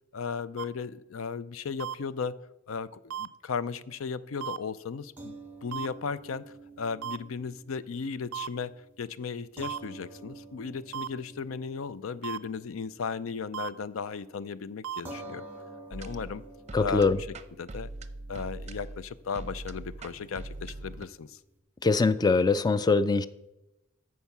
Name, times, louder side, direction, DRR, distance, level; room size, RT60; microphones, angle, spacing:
voice 1, 0.1-2.4 2.7-5.4 5.6-6.4 6.8-15.5 15.9-16.4 16.8-17.1 17.6-17.9 18.3-21.4, left 5 dB, 85° left, 16 dB, 0.5 m, -36 dB
sound 1, 0.6-0.7 1.8-1.9 3.1-3.3 4.4-4.6 5.7-5.9 7.0-7.2 8.3-8.5 9.6-9.8 10.9-11.1 12.2-12.4 13.5-13.7 14.8-15.0, right 10 dB, 85° right, 0.4 m, -34 dB
sound 2, 5.2-13.7 14.0-14.2 15.0-21.6, right 2 dB, 10° right, 1.2 m, -49 dB
sound 3, 15.9-21.1, right 2 dB, 35° right, 0.6 m, -42 dB
voice 2, 16.7-17.2 21.8-23.3, left 3 dB, 20° left, 14 dB, 0.3 m, -23 dB
13.5 x 4.7 x 6.0 m, 0.94 s
head